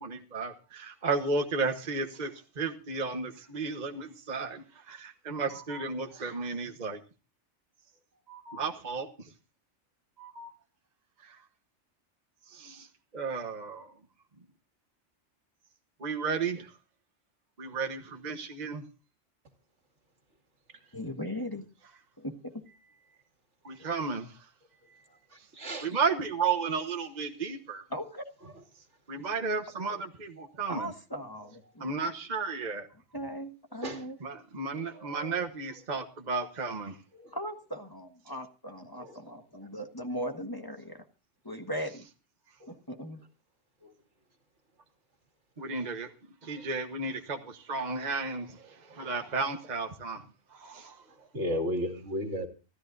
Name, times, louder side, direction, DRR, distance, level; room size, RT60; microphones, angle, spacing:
voice 1, 0.0-7.0 8.3-9.3 10.2-10.5 11.2-11.4 12.4-14.0 16.0-16.8 17.6-18.8 23.6-24.5 25.4-25.5 25.8-27.9 28.7-30.9 31.8-32.9 34.2-37.0 45.6-46.1 46.4-50.2 50.5-51.0, right 4 dB, 40° right, 1.3 m, -33 dB
voice 2, 20.9-21.7 22.2-22.5 27.9-28.6 30.7-31.8 33.1-34.2 37.3-41.0 41.4-42.1 42.7-43.2, equal, 20° left, 1.5 m, -38 dB
voice 3, 25.5-25.9 33.8-34.0 35.0-35.3 37.2-37.3 39.0-39.2 43.8-43.9 51.3-52.5, equal, 75° right, 2.8 m, -34 dB
24.5 x 14.0 x 2.6 m
omnidirectional pair, 1.2 m